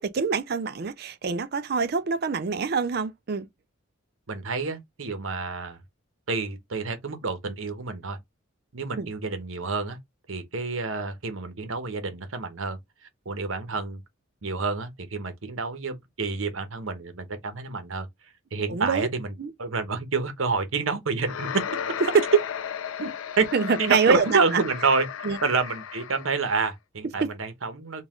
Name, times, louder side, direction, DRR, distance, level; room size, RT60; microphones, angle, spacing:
voice 1, 0.0-3.5 9.0-9.1 18.7-19.1 19.4-19.5 23.5-24.6 25.2-25.4 27.2-27.3, right 5 dB, 50° right, 0.4 m, -26 dB
voice 2, 4.3-5.8 6.3-8.2 8.7-10.0 10.3-12.8 13.2-14.0 14.4-18.1 18.5-21.6 23.0-23.1 23.4-23.5 23.8-25.1 25.4-28.0, right 4 dB, 80° right, 1.0 m, -28 dB
sound 1, 21.2-26.6, left 8 dB, 80° left, 0.5 m, -35 dB
3.9 x 2.4 x 3.6 m
head